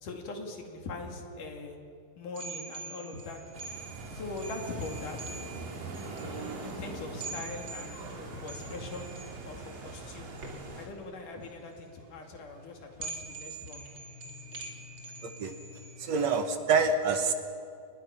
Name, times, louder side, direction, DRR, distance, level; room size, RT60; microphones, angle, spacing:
voice 1, 0.0-1.8 2.2-3.4 4.1-5.4 6.6-9.1 9.5-10.3 10.8-13.8, left 3 dB, 70° left, 2 dB, 4.0 m, -41 dB
sound 1, 2.3-16.3, right 3 dB, 40° right, 3.3 m, -45 dB
sound 2, 3.5-10.9, right 3 dB, 80° right, 4.6 m, -42 dB
voice 2, 16.0-17.3, right 4 dB, 60° right, 7 dB, 2.2 m, -26 dB
30.0 x 21.0 x 6.0 m, 2.4 s
omnidirectional pair, 3.9 m